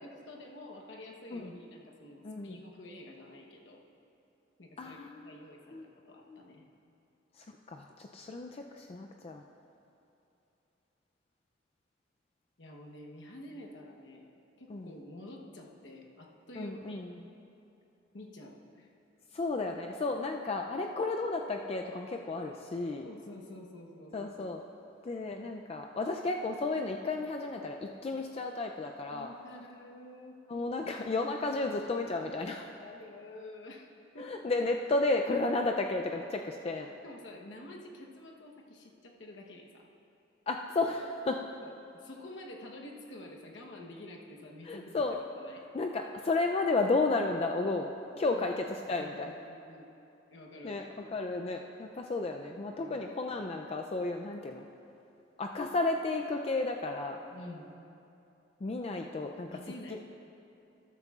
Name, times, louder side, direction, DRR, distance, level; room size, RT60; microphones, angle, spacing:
voice 1, 0.0-3.8 4.6-5.8 6.0-6.6 12.6-14.3 14.6-17.0 18.1-18.9 23.0-24.2 29.1-30.4 32.6-34.3 36.7-39.9 41.6-45.0 45.4-45.6 48.3-48.6 49.0-49.9 50.3-50.9 52.8-53.0 57.3-57.7 59.3-60.2, left 1 dB, 75° left, 0 dB, 1.0 m, -49 dB
voice 2, 2.2-2.6 4.8-5.3 5.7-5.8 6.3-6.4 7.4-9.4 14.7-14.9 16.6-17.1 19.3-23.1 24.1-24.6 25.0-29.3 30.5-32.7 34.2-36.9 40.5-41.4 44.6-45.2 45.7-49.4 50.6-54.6 55.4-57.2 58.6-59.5, left 3 dB, 35° left, 3 dB, 0.4 m, -33 dB
13.0 x 13.0 x 2.4 m, 2.8 s
head